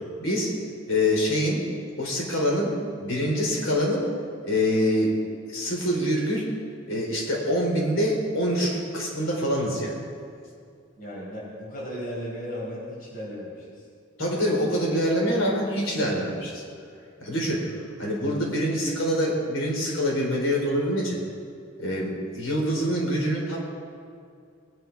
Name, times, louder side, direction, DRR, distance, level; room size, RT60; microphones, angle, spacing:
voice 1, 0.2-0.5 0.9-1.6 2.0-4.1 4.4-5.1 5.5-6.5 6.9-9.9 14.2-16.6 17.2-17.7 18.0-21.2 21.8-23.6, equal, 75° left, -2 dB, 4.0 m, -25 dB
voice 2, 11.0-13.9, equal, 45° left, -6 dB, 4.6 m, -36 dB
20.5 x 10.5 x 4.7 m, 2.3 s
head